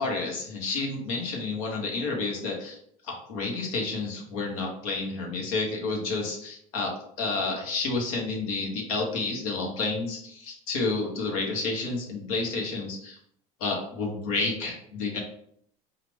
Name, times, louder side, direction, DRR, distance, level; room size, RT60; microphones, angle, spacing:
voice 1, 0.0-2.8 3.1-6.9 7.2-13.2 13.6-15.2, left 3 dB, 85° left, 0 dB, 1.2 m, -30 dB
4.9 x 2.4 x 3.3 m, 0.67 s
supercardioid pair, 110°, 17 cm